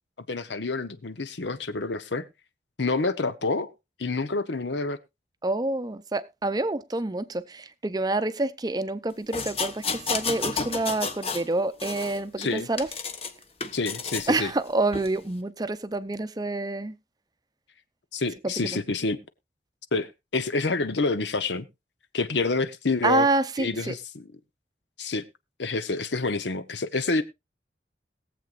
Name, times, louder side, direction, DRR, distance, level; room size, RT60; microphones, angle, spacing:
voice 1, 0.2-2.3 2.8-3.7 4.0-5.0 12.4-12.7 13.7-14.5 18.1-19.2 19.9-21.7 22.1-23.3 23.6-24.3 25.0-25.3 25.6-27.2, left 3 dB, 85° left, 1.0 m, -28 dB
voice 2, 5.4-12.9 14.3-16.9 18.4-18.8 23.0-23.9, right 2 dB, 20° right, 0.6 m, -27 dB
sound 1, 9.3-11.5 11.8-13.3 13.6-14.3 14.9-15.1, left 5 dB, 35° left, 1.0 m, -31 dB
21.0 x 7.7 x 2.5 m
head